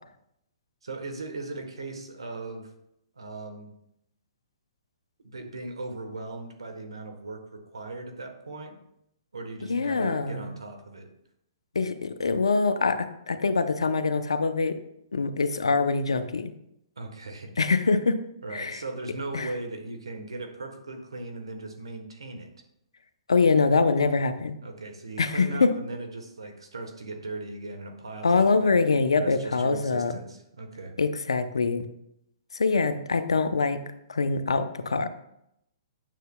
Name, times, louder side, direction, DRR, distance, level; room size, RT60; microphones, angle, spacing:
voice 1, 0.8-2.7 3.2-3.7 5.2-8.8 9.3-11.1 17.0-17.5 18.4-22.5 24.6-28.8 29.2-30.9, right 2 dB, 90° right, 6 dB, 1.2 m, -38 dB
voice 2, 9.7-10.5 11.7-14.8 15.1-16.5 17.6-18.2 18.5-18.8 19.3-19.5 23.3-24.6 25.2-25.7 28.2-30.1 31.0-31.9 32.5-33.8 34.1-35.1, left 4 dB, 90° left, 11 dB, 0.6 m, -24 dB
9.1 x 6.7 x 2.2 m, 0.78 s
hypercardioid pair, 130°, 3 cm